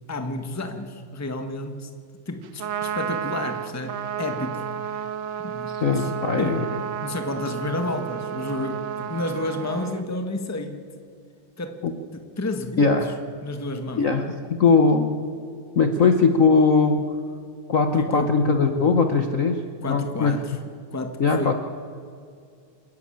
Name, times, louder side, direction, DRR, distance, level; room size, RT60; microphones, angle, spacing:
voice 1, 0.1-1.9 2.3-5.1 5.4-6.1 6.4-6.7 7.0-10.9 11.6-11.8 12.1-13.1 13.4-14.1 16.0-16.1 18.0-18.4 19.8-20.6 20.9-21.5, left 2 dB, 10° left, 7 dB, 1.1 m, -31 dB
Trumpet, 2.4-10.0, right 8 dB, 70° right, 0.8 m, -32 dB
voice 2, 5.7-6.6 11.8-11.9 12.8-13.1 14.0-15.2 15.7-17.2 17.7-20.4 21.2-21.5, left 4 dB, 50° left, 6 dB, 1.2 m, -20 dB
28.0 x 11.5 x 8.7 m, 2.3 s
omnidirectional pair, 2.3 m